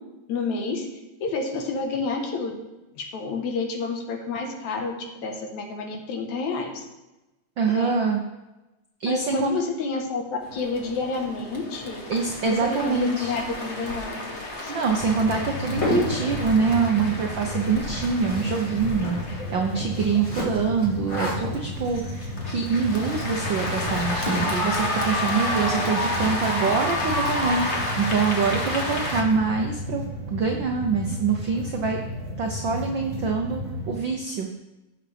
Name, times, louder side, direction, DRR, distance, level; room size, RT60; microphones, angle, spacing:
voice 1, 0.3-0.9 1.2-2.5 3.0-6.8 7.7-7.9 9.1-12.0 12.5-14.2 14.6-14.7, left 4 dB, 70° left, 3 dB, 2.6 m, -29 dB
voice 2, 7.6-8.2 9.0-9.6 12.1-13.3 14.7-30.0 30.3-32.0 32.4-33.6 33.9-34.5, right 5 dB, 80° right, 2 dB, 1.0 m, -25 dB
sound 1, 10.4-29.2, left 1 dB, 55° left, 0.7 m, -31 dB
sound 2, 15.0-34.0, left 1 dB, 35° right, 2.2 m, -34 dB
sound 3, 15.8-29.0, left 1 dB, 20° left, 3.2 m, -35 dB
17.0 x 7.4 x 3.4 m, 1.0 s
omnidirectional pair, 3.4 m